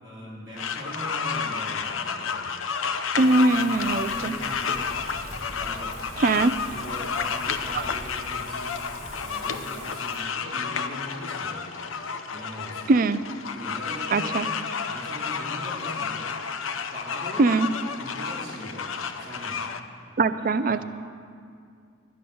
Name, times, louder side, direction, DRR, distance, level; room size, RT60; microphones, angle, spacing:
voice 1, 0.0-2.6 3.1-3.4 4.0-4.9 5.5-6.1 6.7-8.8 9.2-11.8 12.3-12.9 13.5-14.6 14.8-16.3 16.9-17.5 18.0-19.7 20.7-20.8, equal, 25° right, -9 dB, 3.4 m, -40 dB
sound 1, 0.6-19.8, left 6 dB, 90° left, 0.7 m, -31 dB
Wind, 3.2-10.2, equal, 15° left, 3.0 m, -44 dB
voice 2, 3.2-4.4 6.2-6.5 7.7-7.8 12.9-13.2 14.1-14.5 17.4-17.7 20.2-20.8, right 3 dB, 45° right, 13 dB, 0.4 m, -21 dB
11.5 x 10.5 x 7.0 m, 2.2 s
head